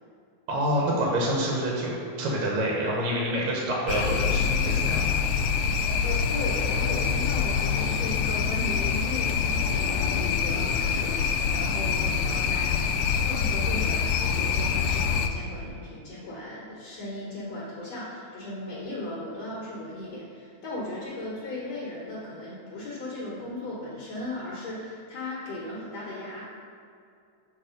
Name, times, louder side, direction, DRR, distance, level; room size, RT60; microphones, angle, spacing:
voice 1, 0.5-5.2, right 1 dB, 65° right, -3 dB, 2.2 m, -27 dB
sound 1, 3.9-15.3, left 6 dB, 80° left, 1.7 m, -25 dB
voice 2, 6.0-26.4, left 1 dB, 65° left, -7 dB, 2.2 m, -36 dB
7.2 x 4.9 x 5.1 m, 2.4 s
omnidirectional pair, 3.5 m